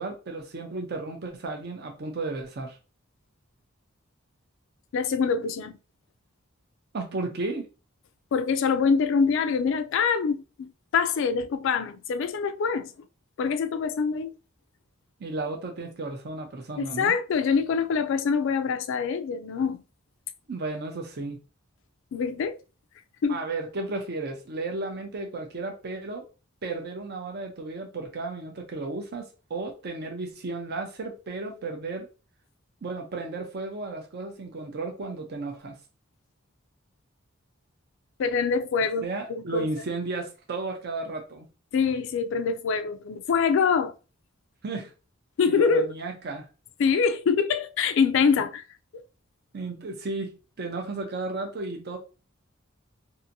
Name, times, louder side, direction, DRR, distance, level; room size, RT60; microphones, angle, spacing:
voice 1, 0.0-2.8 6.9-7.7 15.2-17.1 20.5-21.4 23.3-26.2 26.6-32.1 32.8-35.7 39.0-41.5 44.6-44.9 45.5-46.5 49.5-52.0, right 3 dB, 50° right, 0.6 m, -34 dB
voice 2, 4.9-5.8 8.3-12.9 13.4-14.3 16.8-19.8 22.1-22.6 23.2-23.4 38.2-39.7 41.7-43.9 45.4-45.9 46.8-48.6 48.9-49.0, left 5 dB, 65° left, 0.3 m, -25 dB
2.7 x 2.5 x 2.6 m
head